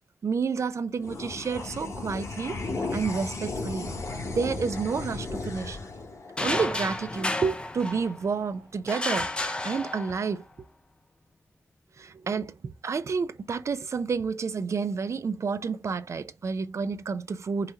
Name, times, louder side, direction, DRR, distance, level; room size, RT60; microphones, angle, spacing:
voice 1, 0.2-3.9 4.3-5.8 6.4-10.4 12.0-17.7, right 5 dB, 55° right, 0.6 m, -30 dB
sound 1, 1.0-7.7, left 3 dB, 55° left, 2.1 m, -35 dB
sound 2, 6.4-8.4 8.9-10.4, left 2 dB, 15° left, 0.7 m, -31 dB
5.6 x 3.2 x 2.8 m
wide cardioid pair, 115°, 6 cm